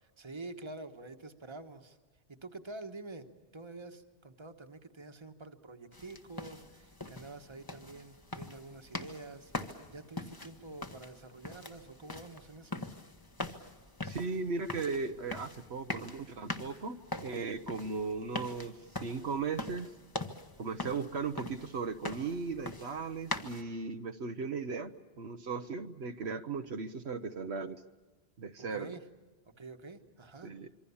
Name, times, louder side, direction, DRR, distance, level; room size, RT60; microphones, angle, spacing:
voice 1, 0.0-2.0 2.3-3.3 3.5-12.9 28.6-29.0 29.6-30.5, right 2 dB, 25° right, 7 dB, 1.4 m, -47 dB
sound 1, 5.9-23.6, left 2 dB, 20° left, 1.2 m, -43 dB
voice 2, 14.0-19.9 20.6-27.8 28.4-28.9 30.4-30.7, right 4 dB, 75° right, 8 dB, 1.2 m, -37 dB
26.5 x 24.0 x 7.1 m, 1.3 s
omnidirectional pair, 1.1 m